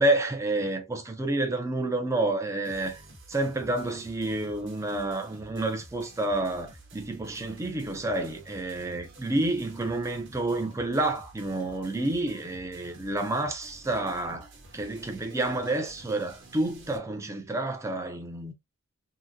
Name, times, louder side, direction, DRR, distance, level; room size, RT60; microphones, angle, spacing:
voice 1, 0.0-3.0 3.3-18.5, right 2 dB, 15° right, 0.4 m, -29 dB
sound 1, 2.6-17.0, right 1 dB, 55° right, 1.0 m, -51 dB
3.7 x 2.0 x 2.6 m
head